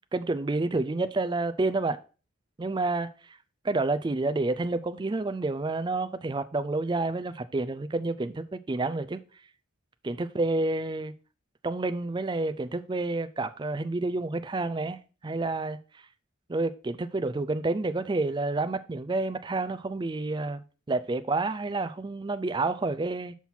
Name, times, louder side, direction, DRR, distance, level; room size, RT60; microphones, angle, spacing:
voice 1, 0.1-2.0 2.6-3.4 3.6-9.2 10.0-11.1 11.6-15.8 16.5-23.3, right 2 dB, 20° right, 0.4 m, -29 dB
5.8 x 5.6 x 4.4 m
head